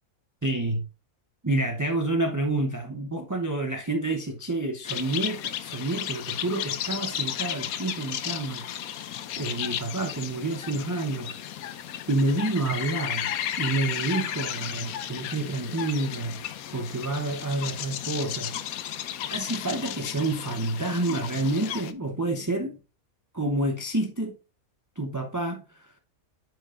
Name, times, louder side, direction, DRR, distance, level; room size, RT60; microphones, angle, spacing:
voice 1, 0.4-0.8 1.4-13.3 13.6-19.0 19.3-22.8 23.3-24.3 25.0-25.9, right 2 dB, 20° right, 0.6 m, -29 dB
sound 1, 4.8-21.9, left 10 dB, 80° left, 1.1 m, -34 dB
8.9 x 5.5 x 2.5 m
omnidirectional pair, 1.5 m